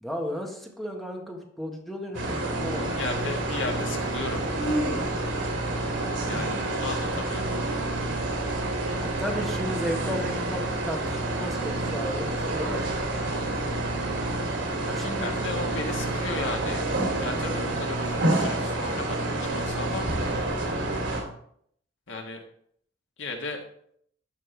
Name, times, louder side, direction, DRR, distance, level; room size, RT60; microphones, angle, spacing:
voice 1, 0.0-3.0 9.0-12.8 14.9-15.5, equal, ahead, 0 dB, 1.4 m, -34 dB
sound 1, 2.1-21.2, right 2 dB, 80° right, 2.5 m, -28 dB
voice 2, 3.0-4.4 6.3-7.5 14.8-16.9 17.2-20.2 22.1-22.4 23.2-23.6, left 3 dB, 75° left, 2 dB, 1.5 m, -35 dB
12.0 x 5.5 x 3.3 m, 0.66 s
head